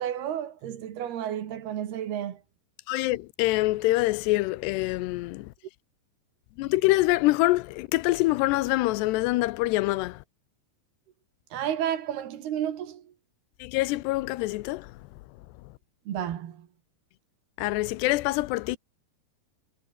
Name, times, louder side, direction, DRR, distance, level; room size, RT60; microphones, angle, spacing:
voice 1, 0.0-2.4 11.5-13.1 16.1-16.7, right 10 dB, 70° right, 4.0 m, -32 dB
voice 2, 2.9-5.5 6.6-10.2 13.6-14.9 17.6-18.8, left 19 dB, 85° left, 2.9 m, -25 dB
omnidirectional pair, 4.7 m